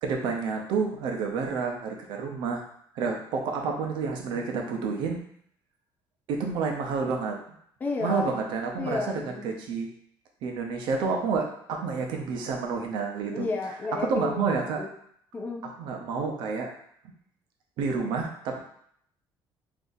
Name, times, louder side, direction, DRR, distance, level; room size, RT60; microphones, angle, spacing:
voice 1, 0.0-2.6 2.9-5.2 6.3-7.4 8.0-9.9 10.4-13.5 14.1-14.8 15.8-16.7 17.8-18.6, right 5 dB, 65° right, 2 dB, 0.6 m, -29 dB
voice 2, 7.8-8.5 8.8-9.5 13.3-14.9 15.3-15.7, left 3 dB, 20° left, 1 dB, 0.4 m, -32 dB
3.9 x 2.7 x 2.6 m, 0.66 s
cardioid pair, 180°, 9 cm